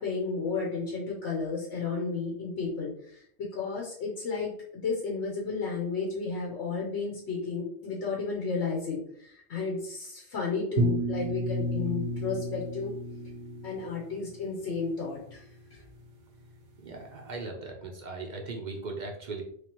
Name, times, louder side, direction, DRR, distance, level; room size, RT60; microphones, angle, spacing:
voice 1, 0.0-12.9 13.6-15.8, left 4 dB, 70° left, -2 dB, 1.1 m, -33 dB
sound 1, 10.8-13.9, equal, 75° right, 1.0 m, -31 dB
voice 2, 16.8-19.4, right 3 dB, 50° right, 2 dB, 0.6 m, -38 dB
3.3 x 3.3 x 2.9 m, 0.63 s
omnidirectional pair, 1.3 m